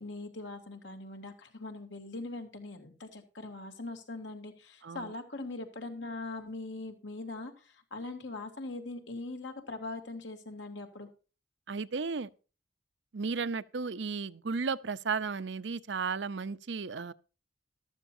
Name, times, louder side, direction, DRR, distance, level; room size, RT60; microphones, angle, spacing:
voice 1, 0.0-11.1, left 2 dB, 85° left, 2.7 m, -41 dB
voice 2, 11.7-12.3 13.1-17.1, right 5 dB, 75° right, 0.7 m, -34 dB
14.0 x 12.5 x 2.7 m
head